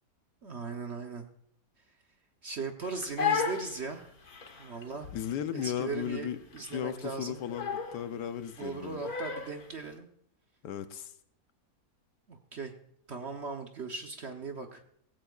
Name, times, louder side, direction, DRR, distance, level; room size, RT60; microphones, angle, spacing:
voice 1, 0.4-1.3 2.4-4.1 4.6-5.1 5.5-7.4 8.6-10.1 12.3-12.7 13.1-14.8, right 4 dB, 50° right, 4 dB, 1.0 m, -38 dB
Crying sobbing, 2.8-9.7, left 6 dB, 60° left, 1.9 m, -35 dB
voice 2, 5.1-6.4 6.7-9.0 10.6-11.1, left 9 dB, 80° left, 10 dB, 1.4 m, -36 dB
17.5 x 15.5 x 2.4 m, 0.69 s
omnidirectional pair, 1.8 m